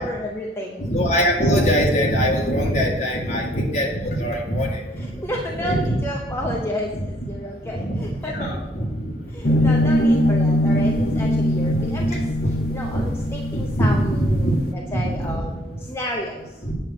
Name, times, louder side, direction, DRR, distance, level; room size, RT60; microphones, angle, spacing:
voice 1, 0.0-0.9 5.0-8.5 9.3-16.6, equal, 15° left, -1 dB, 0.8 m, -31 dB
voice 2, 0.8-6.0 6.4-6.5 6.9-7.0 7.7-10.3 10.6-11.3 11.7-12.1 12.4-12.5 12.9-13.0 13.5-14.5 14.8-15.6 16.6-16.7, equal, 40° left, -2 dB, 2.0 m, -23 dB
sound 1, 9.4-14.7, equal, 55° left, 0.8 m, -22 dB
8.8 x 6.1 x 6.1 m, 1.0 s
head